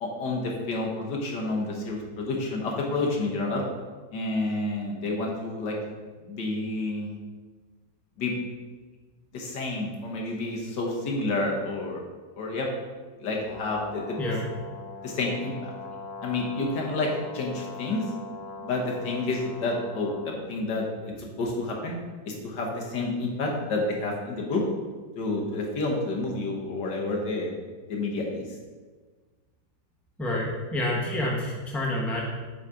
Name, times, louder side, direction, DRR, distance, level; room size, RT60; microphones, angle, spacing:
voice 1, 0.0-3.6 4.1-5.7 6.2-7.2 8.2-8.3 9.3-12.0 12.4-12.7 13.2-14.2 15.0-15.7 16.2-18.0 18.6-22.0 22.3-24.6 25.2-27.5 27.9-28.4, left 2 dB, 75° left, -1 dB, 1.8 m, -29 dB
Brass instrument, 13.4-20.4, left 3 dB, 50° left, 0.7 m, -41 dB
voice 2, 30.2-32.3, left 1 dB, ahead, -3 dB, 1.0 m, -28 dB
8.1 x 4.1 x 5.0 m, 1.4 s
omnidirectional pair, 1.9 m